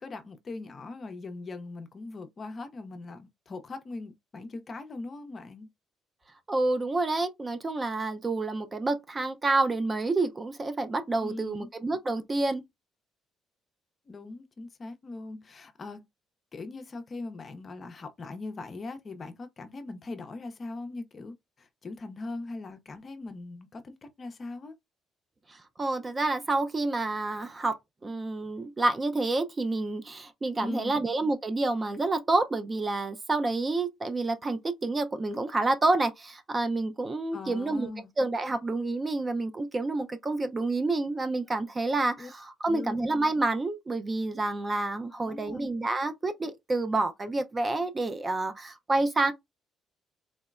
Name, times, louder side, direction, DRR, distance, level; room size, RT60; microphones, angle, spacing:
voice 1, 0.0-5.7 11.2-11.7 14.1-16.1 16.5-24.8 30.6-31.0 37.3-38.1 42.2-42.3 42.7-43.1 45.1-45.7, left 3 dB, 40° left, 0.5 m, -40 dB
voice 2, 6.5-12.6 25.5-27.8 28.0-37.9 38.2-49.3, right 2 dB, 30° right, 0.4 m, -28 dB
3.8 x 2.0 x 2.3 m
cardioid pair, 95°, 0 cm